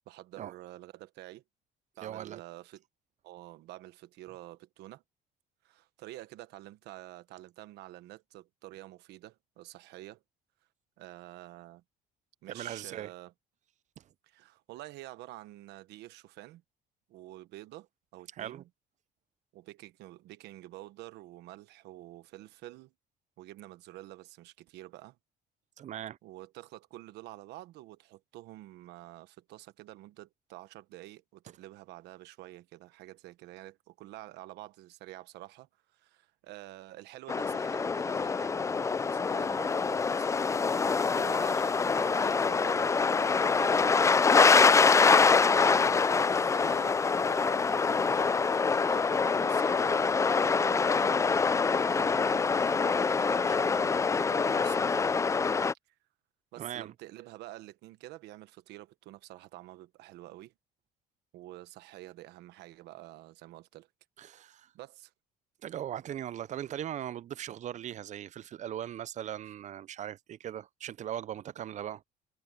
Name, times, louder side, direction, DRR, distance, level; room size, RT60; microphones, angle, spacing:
voice 1, 0.1-1.4 2.0-2.8 3.2-5.0 5.6-10.2 11.0-11.8 12.4-13.3 14.2-16.6 17.1-18.7 19.5-22.9 23.4-25.2 26.2-40.3 40.8-47.0 47.3-55.1 56.5-60.5 61.3-63.9 64.3-65.1, right 16 dB, 85° right, 1.2 m, -49 dB
voice 2, 2.0-2.4 12.5-13.1 14.0-14.1 18.4-18.6 25.8-26.2 56.6-56.9 64.2-64.7 65.6-72.0, right 11 dB, 45° right, 0.5 m, -39 dB
sound 1, 37.3-55.7, left 5 dB, 20° left, 0.3 m, -25 dB
cardioid pair, 110°, 17 cm